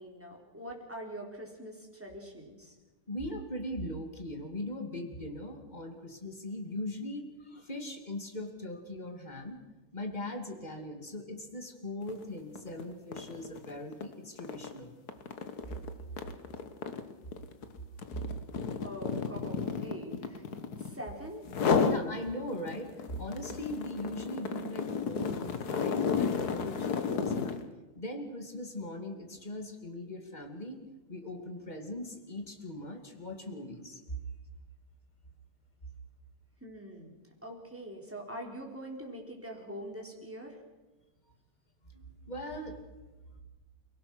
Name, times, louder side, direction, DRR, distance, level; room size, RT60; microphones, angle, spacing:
voice 1, 0.0-2.8 18.8-20.4 20.7-22.0 36.6-37.1 37.4-40.6, equal, 5° right, -1 dB, 3.9 m, -44 dB
voice 2, 3.1-9.6 9.9-14.9 15.6-15.7 21.8-27.6 27.9-30.8 31.1-34.2 41.8-42.8, left 1 dB, 20° left, 5 dB, 2.6 m, -40 dB
sound 1, 12.0-12.2 12.6-21.0 21.5-22.0 22.5-27.6, left 6 dB, 50° left, 1.7 m, -32 dB
29.5 x 17.5 x 6.3 m, 1.2 s
omnidirectional pair, 2.3 m